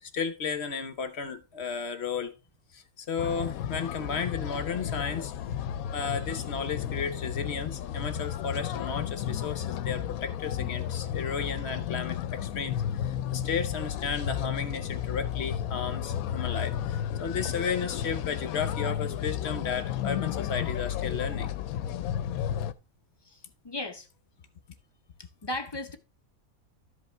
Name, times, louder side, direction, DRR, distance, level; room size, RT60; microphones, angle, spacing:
voice 1, 0.0-2.3 2.7-5.3 5.9-21.5, left 6 dB, 55° left, 1.0 m, -34 dB
sound 1, 3.2-22.7, left 10 dB, 80° left, 1.0 m, -33 dB
voice 2, 23.2-24.1 25.4-26.0, left 1 dB, 30° left, 0.4 m, -36 dB
13.0 x 5.2 x 3.2 m
omnidirectional pair, 1.5 m